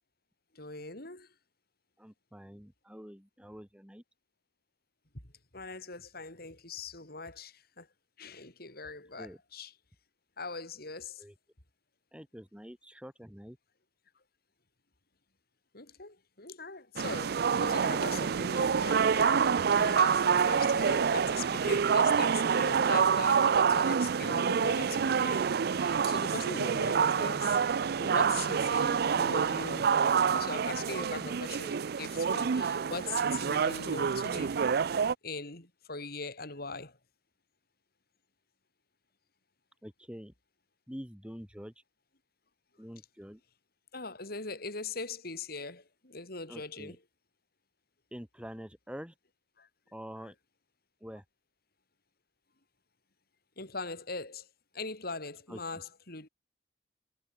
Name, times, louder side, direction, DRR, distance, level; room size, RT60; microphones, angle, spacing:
voice 1, 0.5-1.3 5.5-7.9 8.2-9.7 10.4-11.2 15.7-27.6 28.0-29.9 30.3-34.6 35.2-37.0 43.9-47.0 49.6-49.7 50.2-50.3 53.6-54.5 54.7-56.3, left 3 dB, 60° left, 7.1 m, -41 dB
voice 2, 2.0-4.0 9.2-9.4 11.2-11.3 12.1-13.6 39.8-40.3 40.9-41.7 42.8-43.4 46.5-47.0 48.1-49.1 49.9-50.3 51.0-51.2 55.5-55.6, equal, 5° right, 4.4 m, -46 dB
sound 1, 17.0-35.1, right 6 dB, 60° right, 0.5 m, -27 dB
head